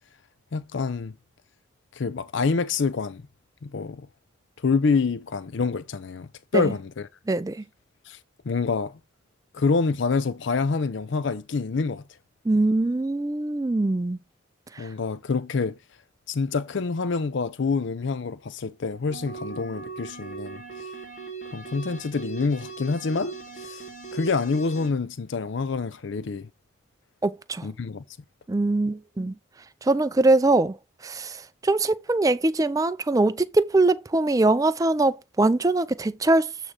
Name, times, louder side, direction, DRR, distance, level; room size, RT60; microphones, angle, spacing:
voice 1, 0.5-1.1 1.9-3.2 3.6-4.1 4.6-7.1 8.1-8.2 8.5-8.9 9.5-12.0 14.8-15.8 16.3-20.9 21.5-23.8 24.1-26.5 27.6-28.0, left 4 dB, 60° left, 0.5 m, -27 dB
voice 2, 7.3-7.6 12.4-14.2 14.7-14.9 27.2-27.7 28.5-29.3 29.8-30.8 31.0-36.5, right 2 dB, 15° right, 0.4 m, -22 dB
sound 1, 19.1-24.9, right 5 dB, 40° left, 1.8 m, -39 dB
8.6 x 3.1 x 4.8 m
head